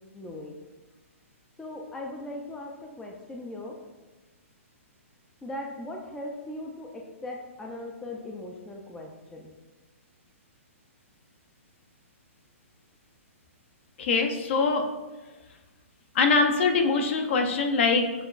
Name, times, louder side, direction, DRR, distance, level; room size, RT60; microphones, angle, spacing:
voice 1, 0.1-0.6 1.6-3.8 5.4-9.5, left 1 dB, 5° left, 0 dB, 0.3 m, -39 dB
voice 2, 14.0-14.9 16.1-18.1, left 4 dB, 55° left, 4 dB, 0.6 m, -23 dB
6.5 x 2.3 x 2.4 m, 1.2 s
hypercardioid pair, 135°, 8 cm